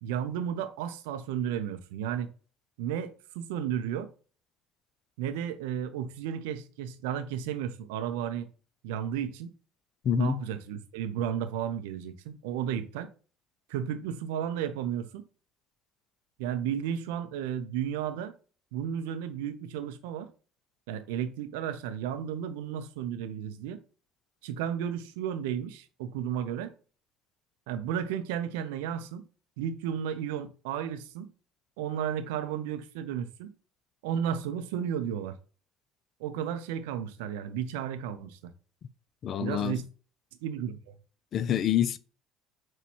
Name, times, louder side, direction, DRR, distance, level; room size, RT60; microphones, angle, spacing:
voice 1, 0.0-2.3 2.8-4.1 5.2-8.5 8.8-9.5 10.1-13.1 13.7-15.2 16.4-18.3 18.7-20.3 20.9-23.8 24.4-26.7 27.7-29.2 29.6-31.3 31.8-33.5 34.0-35.4 36.2-38.5 39.4-39.8 40.4-40.8, right 9 dB, 70° right, 0.4 m, -33 dB
voice 2, 10.0-10.4 39.2-39.8 41.3-42.0, left 10 dB, 50° left, 0.3 m, -26 dB
5.9 x 2.2 x 2.9 m
hypercardioid pair, 60°, 0 cm